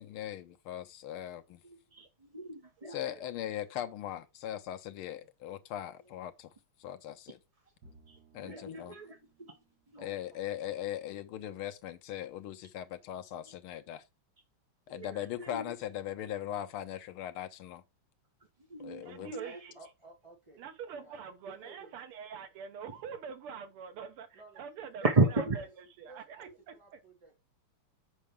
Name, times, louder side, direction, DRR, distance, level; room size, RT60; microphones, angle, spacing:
voice 1, 0.0-1.6 2.9-6.5 6.8-7.4 8.3-8.9 10.0-14.0 14.9-17.8 18.8-19.3, left 11 dB, 85° left, 1.6 m, -39 dB
voice 2, 1.6-3.3 8.1-9.5 9.9-10.1 14.9-15.6 18.7-19.6 25.0-25.6 26.5-26.6, right 3 dB, 30° right, 0.6 m, -33 dB
Bowed string instrument, 7.8-11.3, right 2 dB, 60° right, 2.1 m, -64 dB
voice 3, 10.0-10.4 19.2-20.6 21.0-21.9 24.3-24.6 25.0-25.1 26.1-27.4, right 3 dB, 15° right, 3.6 m, -55 dB
voice 4, 19.0-19.7 20.6-25.1 25.3-25.7 26.0-27.0, right 7 dB, 85° right, 2.0 m, -45 dB
7.4 x 5.5 x 3.4 m
omnidirectional pair, 2.4 m